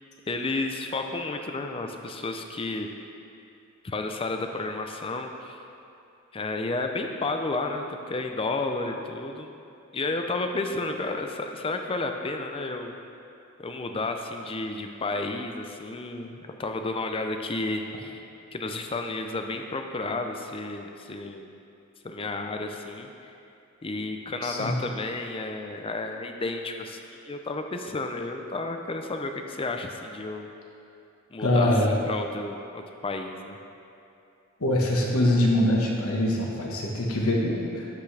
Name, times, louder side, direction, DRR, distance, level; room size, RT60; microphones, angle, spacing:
voice 1, 0.3-2.9 3.8-5.6 6.3-9.5 9.9-12.9 13.6-18.2 18.5-21.5 22.0-23.1 23.8-27.0 27.3-30.5 31.3-33.6, left 2 dB, 25° left, 4 dB, 0.5 m, -32 dB
voice 2, 24.4-24.8 31.4-31.9 34.6-37.9, left 1 dB, 85° left, -2 dB, 1.4 m, -23 dB
12.0 x 5.9 x 3.3 m, 2.7 s
head